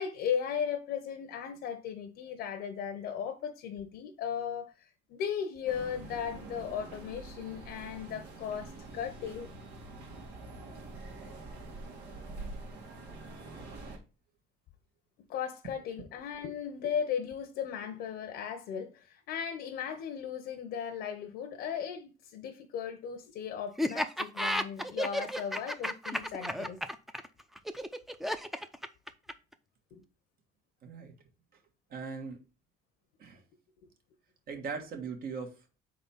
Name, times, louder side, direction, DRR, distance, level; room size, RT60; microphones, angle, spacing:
voice 1, 0.0-9.5 15.3-26.8 29.9-30.0, left 8 dB, 75° left, 0.9 m, -36 dB
sound 1, 5.6-14.0, right 2 dB, 90° right, 2.0 m, -45 dB
Laughter, 23.8-29.5, equal, ahead, 0.5 m, -33 dB
voice 2, 30.8-31.1 31.9-32.4 33.2-33.4 34.5-35.8, right 5 dB, 60° right, 1.5 m, -40 dB
4.3 x 3.9 x 5.6 m
cardioid pair, 110°, 17 cm